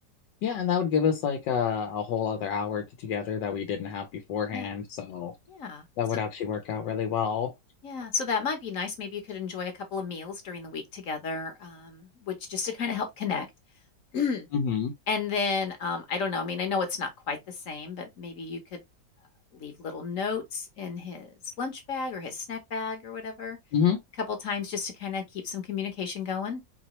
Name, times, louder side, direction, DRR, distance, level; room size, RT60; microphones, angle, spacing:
voice 1, 0.4-5.3 6.0-7.5 14.5-14.9 23.7-24.0, left 7 dB, 85° left, 1.4 m, -28 dB
voice 2, 5.5-5.8 7.8-13.5 14.1-14.5 15.1-18.8 19.5-23.6 24.3-26.6, left 5 dB, 55° left, 1.2 m, -32 dB
4.8 x 3.0 x 3.0 m
omnidirectional pair, 1.9 m